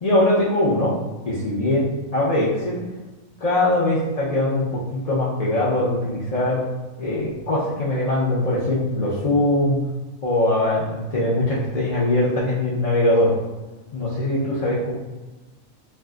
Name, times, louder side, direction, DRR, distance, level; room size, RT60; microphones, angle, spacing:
voice 1, 0.0-0.9 1.2-1.8 2.1-2.8 3.4-6.6 7.0-9.8 10.2-13.3 13.9-14.9, left 1 dB, 80° left, -8 dB, 0.3 m, -21 dB
2.5 x 2.2 x 3.6 m, 1.1 s
omnidirectional pair, 1.4 m